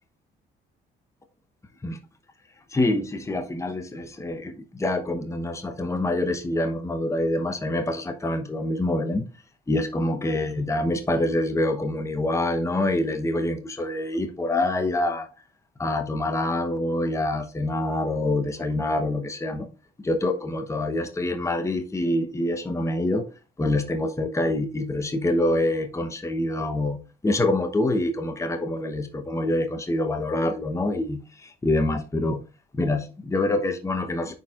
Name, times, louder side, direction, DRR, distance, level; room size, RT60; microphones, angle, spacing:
voice 1, 2.7-9.3 9.7-15.3 15.8-19.7 20.0-23.2 23.6-32.4 32.7-34.4, left 1 dB, 15° left, 0.9 m, -26 dB
10.5 x 4.3 x 2.5 m
cardioid pair, 90°, 20 cm